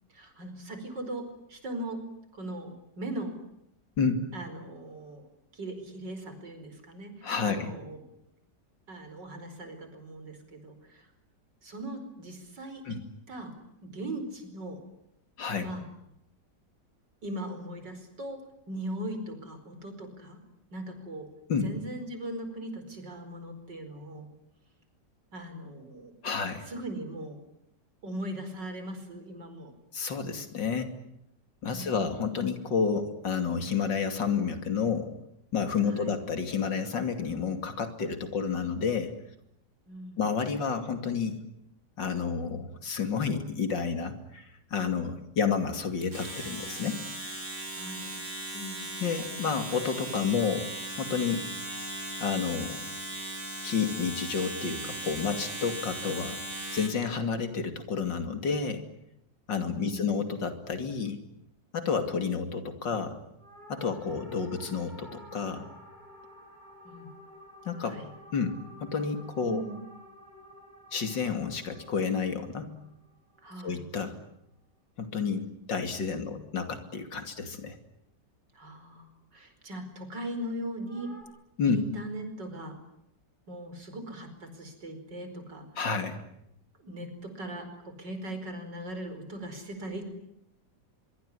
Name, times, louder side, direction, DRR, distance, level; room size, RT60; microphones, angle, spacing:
voice 1, 0.1-2.0 2.3-3.4 4.3-5.3 5.5-8.0 8.9-11.1 11.6-13.0 13.3-13.5 13.8-14.8 15.6-15.9 17.2-18.4 18.7-20.4 20.7-21.3 21.6-24.3 25.3-26.2 26.7-27.4 28.0-29.7 31.7-32.2 35.9-36.2 39.9-40.2 47.7-48.2 48.5-48.8 59.7-60.2 66.8-67.1 67.8-68.1 69.4-69.9 73.4-73.8 78.5-81.1 81.6-82.8 83.5-85.7 86.8-90.0, right 1 dB, 75° right, 7 dB, 5.5 m, -39 dB
voice 2, 4.0-4.3 7.2-7.7 12.8-13.0 15.4-15.7 21.5-21.7 26.2-26.7 29.9-30.9 31.6-35.1 35.5-39.1 40.2-41.4 42.0-47.4 49.0-50.7 51.0-51.5 52.2-52.8 53.6-56.4 56.7-58.8 59.5-61.2 61.7-63.2 63.7-65.7 67.6-68.0 68.3-68.5 68.8-69.6 70.9-72.7 73.6-74.1 75.0-75.4 75.7-77.8 81.6-81.8 85.8-86.2, left 5 dB, 90° left, 8 dB, 3.4 m, -30 dB
Domestic sounds home sounds, 46.0-57.0, right 1 dB, 40° right, 6.0 m, -38 dB
sound 1, 63.4-73.9 80.8-81.2, equal, 25° right, 7.8 m, -52 dB
24.5 x 23.5 x 9.9 m, 0.80 s
omnidirectional pair, 1.9 m